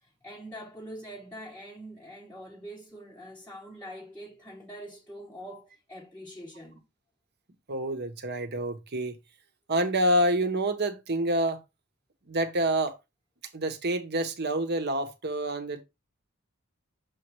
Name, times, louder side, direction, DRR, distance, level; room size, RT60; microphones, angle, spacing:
voice 1, 0.0-6.9, equal, 5° left, 0.9 m, -44 dB
voice 2, 7.7-9.1 9.7-11.6 12.3-13.0 13.5-15.8, right 1 dB, 50° right, 1.1 m, -27 dB
7.0 x 3.1 x 4.6 m
head